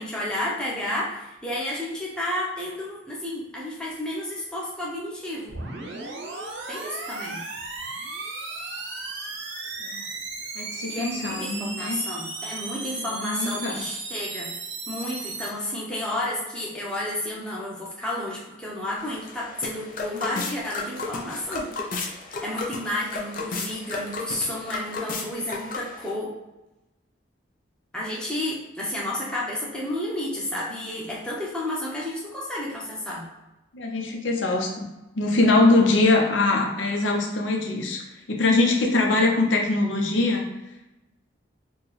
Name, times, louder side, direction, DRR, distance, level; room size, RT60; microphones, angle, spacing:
voice 1, 0.0-5.6 6.7-7.4 10.9-14.5 14.9-21.7 22.0-26.3 27.9-33.3, left 1 dB, 5° left, -6 dB, 0.8 m, -31 dB
sound 1, 5.5-15.5, right 3 dB, 70° right, 0.6 m, -35 dB
voice 2, 10.5-12.0 13.0-13.8 33.7-34.9 35.2-38.0 38.3-40.5, left 2 dB, 85° left, 1 dB, 0.7 m, -22 dB
sound 2, 19.0-26.1, left 3 dB, 45° left, 0.5 m, -34 dB
4.3 x 2.3 x 3.2 m, 1.0 s
head